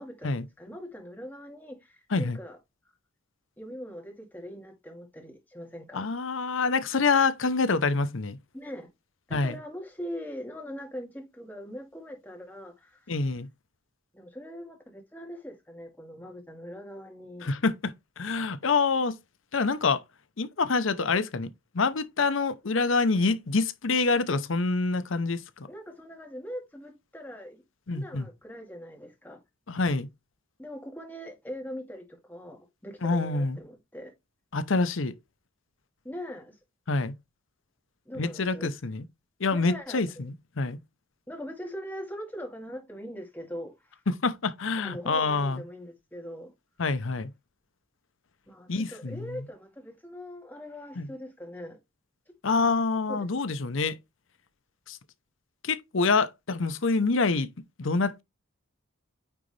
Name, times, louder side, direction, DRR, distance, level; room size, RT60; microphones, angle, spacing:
voice 1, 0.0-2.6 3.6-6.1 8.5-8.9 9.3-13.2 14.1-17.5 25.7-27.6 27.9-29.4 30.6-34.1 36.0-36.6 38.1-38.7 39.5-40.3 41.3-44.0 44.8-46.5 48.5-51.8 52.3-52.4 53.1-53.6, equal, 10° left, 2.0 m, -41 dB
voice 2, 5.9-8.4 9.3-9.6 13.1-13.5 17.4-19.1 19.5-20.0 20.4-25.7 27.9-28.3 29.7-30.1 33.0-33.6 34.5-35.1 36.9-37.1 38.2-39.0 39.4-40.8 44.1-45.6 46.8-47.3 48.7-49.4 51.0-51.1 52.4-53.9 54.9-55.0 55.6-57.5 57.8-58.2, left 4 dB, 70° left, 0.8 m, -26 dB
9.1 x 3.9 x 3.3 m
head